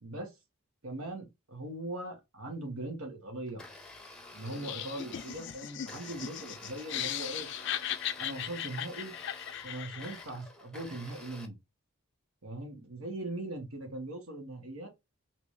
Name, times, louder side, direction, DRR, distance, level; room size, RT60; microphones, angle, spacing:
voice 1, 0.0-0.3 0.8-3.6 4.3-7.5 8.2-9.2 9.6-11.6 12.4-14.9, right 1 dB, 80° right, 1.5 m, -40 dB
Domestic sounds home sounds, 3.5-11.5, left 2 dB, 5° left, 0.6 m, -50 dB
Laughter, 4.5-10.3, left 10 dB, 55° left, 0.4 m, -38 dB
3.5 x 3.0 x 3.1 m
head